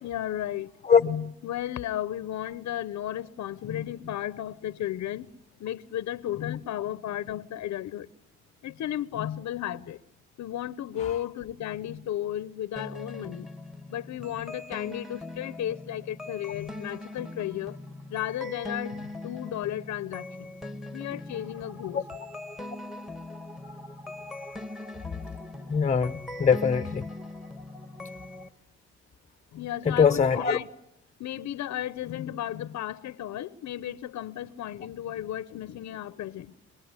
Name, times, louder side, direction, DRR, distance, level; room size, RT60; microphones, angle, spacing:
voice 1, 0.0-0.7 1.0-5.3 5.6-8.1 8.6-10.0 10.4-13.5 13.9-17.8 18.1-20.5 20.9-22.0 29.5-30.7 31.2-36.5, left 12 dB, 65° left, 0.9 m, -34 dB
sound 1, 12.8-28.5, left 2 dB, ahead, 1.6 m, -41 dB
voice 2, 25.7-27.1 29.8-30.6, left 6 dB, 25° left, 0.9 m, -22 dB
25.0 x 20.0 x 9.7 m
cardioid pair, 90°, 30 cm